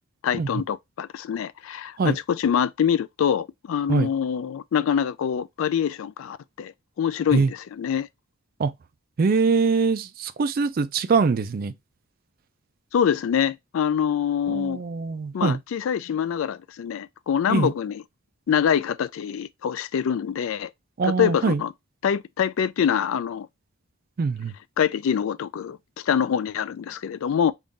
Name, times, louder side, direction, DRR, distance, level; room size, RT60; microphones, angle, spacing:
voice 1, 0.2-8.1 12.9-14.8 15.3-18.0 18.5-20.7 21.0-21.7 22.0-23.5 24.8-27.5, left 8 dB, 65° left, 0.3 m, -25 dB
voice 2, 9.2-11.7 14.5-15.6 17.5-17.7 21.0-21.6 24.2-24.5, right 4 dB, 40° right, 0.3 m, -23 dB
3.6 x 2.4 x 3.8 m
head